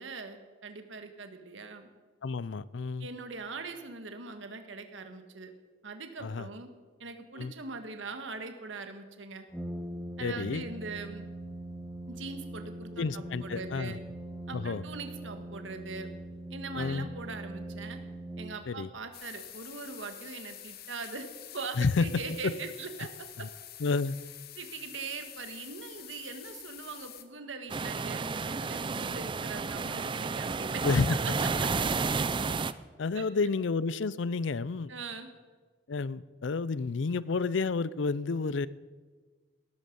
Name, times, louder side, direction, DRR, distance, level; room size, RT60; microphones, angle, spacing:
voice 1, 0.0-1.9 3.0-5.5 5.8-6.7 7.0-9.5 10.2-11.3 12.1-14.0 14.5-16.1 16.5-18.0 18.4-21.3 21.5-23.1 23.4-23.5 24.6-30.8 31.6-31.7 33.1-33.2 34.9-35.3, right 4 dB, 80° right, 6 dB, 1.6 m, -41 dB
voice 2, 2.2-3.1 6.2-6.5 7.4-7.5 10.2-10.6 13.0-14.0 14.5-14.8 16.8-17.1 18.7-18.9 21.8-22.1 22.4-22.5 23.4-23.5 23.8-24.2 30.8-31.2 33.0-34.9 35.9-38.7, left 4 dB, 75° left, 19 dB, 0.5 m, -30 dB
Brass instrument, 9.5-19.0, right 1 dB, 5° right, 1.2 m, -41 dB
sound 1, 19.1-27.2, left 11 dB, 55° left, 1.3 m, -47 dB
sound 2, 27.7-32.7, right 4 dB, 25° right, 0.4 m, -31 dB
17.5 x 14.0 x 5.4 m, 1.4 s
head